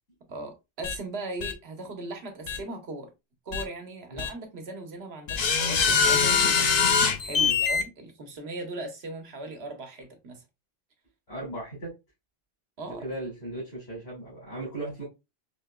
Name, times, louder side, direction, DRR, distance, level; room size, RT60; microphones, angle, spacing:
voice 1, 0.3-3.1 3.5-6.7 7.2-10.4 12.8-13.0, right 2 dB, 80° right, 1.2 m, -38 dB
sound 1, 0.8-1.0 1.4-1.5 2.5-2.6 3.5-3.6 4.2-4.3 5.3-7.8, left 5 dB, 50° left, 0.6 m, -23 dB
voice 2, 11.3-11.9 13.0-15.0, right 1 dB, 80° left, 2.5 m, -37 dB
4.9 x 2.8 x 2.2 m
omnidirectional pair, 1.1 m